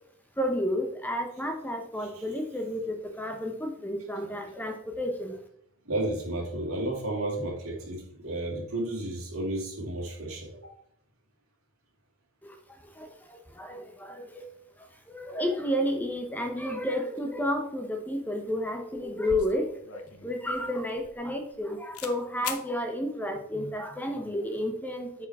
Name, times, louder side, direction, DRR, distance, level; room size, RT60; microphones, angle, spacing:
voice 1, 0.4-5.4 12.4-12.6 12.9-14.5 14.8-19.7 19.9-25.3, left 1 dB, 10° left, 4 dB, 0.8 m, -31 dB
voice 2, 5.8-10.7, right 1 dB, 70° right, -3 dB, 2.7 m, -32 dB
sound 1, 18.7-18.8 19.0-21.6 21.9-22.2 22.4-22.7, left 7 dB, 75° left, 0.8 m, -41 dB
8.3 x 5.0 x 3.6 m, 0.69 s
head